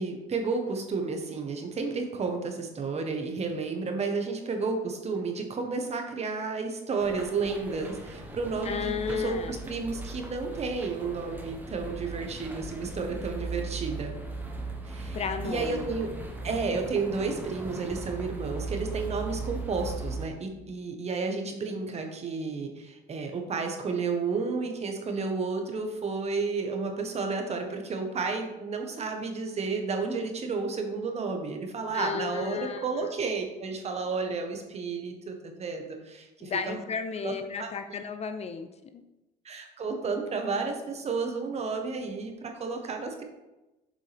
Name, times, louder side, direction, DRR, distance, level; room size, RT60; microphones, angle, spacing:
voice 1, 0.0-14.1 14.8-16.1 16.4-36.8 37.2-37.3 37.6-37.7 39.4-43.2, right 4 dB, 40° right, 4 dB, 1.2 m, -32 dB
sound 1, 7.0-20.3, right 2 dB, 10° right, 1.1 m, -38 dB
voice 2, 8.6-9.6 15.1-15.9 31.9-33.1 36.4-39.0, left 6 dB, 40° left, 8 dB, 0.5 m, -34 dB
7.3 x 5.4 x 3.4 m, 1.0 s
cardioid pair, 110°, 17 cm